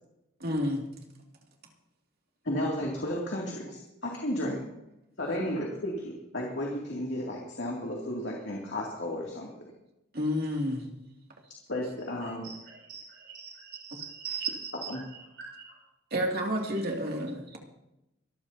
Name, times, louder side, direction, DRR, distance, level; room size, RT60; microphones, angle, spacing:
voice 1, 0.4-0.8 10.1-10.9 14.2-14.5 14.8-14.9 16.1-17.6, equal, 50° right, 0 dB, 2.5 m, -30 dB
voice 2, 2.4-4.6 5.2-9.5 11.7-12.4 14.9-15.0, left 1 dB, 60° left, -2 dB, 2.5 m, -33 dB
voice 3, 12.2-15.8, right 4 dB, 70° right, -4 dB, 4.4 m, -48 dB
25.0 x 14.0 x 2.8 m, 0.88 s
head